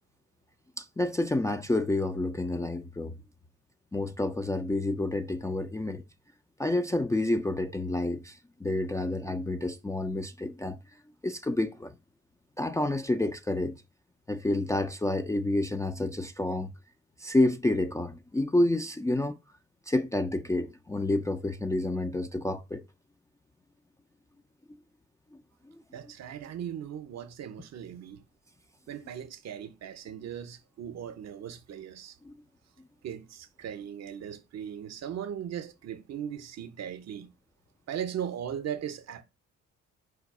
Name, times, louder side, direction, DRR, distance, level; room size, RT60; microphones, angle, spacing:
voice 1, 0.8-3.1 3.9-6.0 6.6-10.8 11.2-12.0 12.6-13.8 14.3-16.7 17.2-19.4 19.9-22.8 25.7-25.8 32.3-32.4, left 2 dB, 10° left, 0.3 m, -29 dB
voice 2, 25.9-28.2 28.9-32.2 33.0-37.3 37.9-39.2, right 9 dB, 60° right, 0.7 m, -38 dB
4.8 x 2.3 x 4.6 m
cardioid pair, 90°, 30 cm